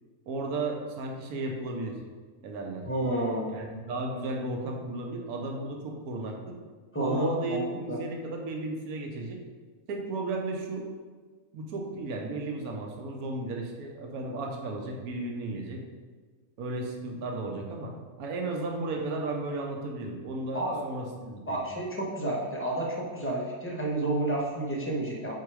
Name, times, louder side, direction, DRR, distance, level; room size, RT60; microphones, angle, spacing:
voice 1, 0.3-2.0 2.4-2.8 3.5-6.5 7.0-9.4 9.9-10.9 11.5-15.8 16.6-17.9 18.2-21.6, right 2 dB, 70° right, 1 dB, 1.3 m, -34 dB
voice 2, 2.9-3.5 6.9-7.6 7.9-8.0 20.5-20.8 21.5-25.3, right 1 dB, 10° left, -2 dB, 0.7 m, -30 dB
4.7 x 4.7 x 4.7 m, 1.4 s
omnidirectional pair, 1.7 m